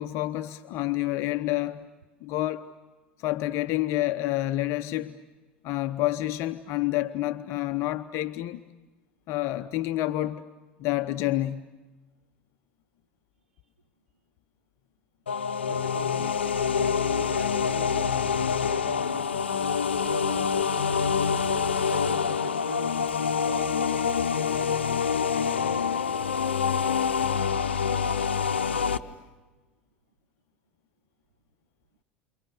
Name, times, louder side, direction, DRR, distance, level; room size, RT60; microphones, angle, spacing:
voice 1, 0.0-1.9 2.2-2.7 3.2-5.2 5.6-8.6 9.3-10.4 10.8-11.6, left 15 dB, 55° left, 0.8 m, -28 dB
sound 1, 15.3-29.0, left 6 dB, 85° left, 0.8 m, -26 dB
voice 2, 15.7-19.6 20.0-22.9 23.4-24.1, right 7 dB, 85° right, 0.8 m, -41 dB
28.5 x 28.5 x 6.9 m
hypercardioid pair, 75°, 6 cm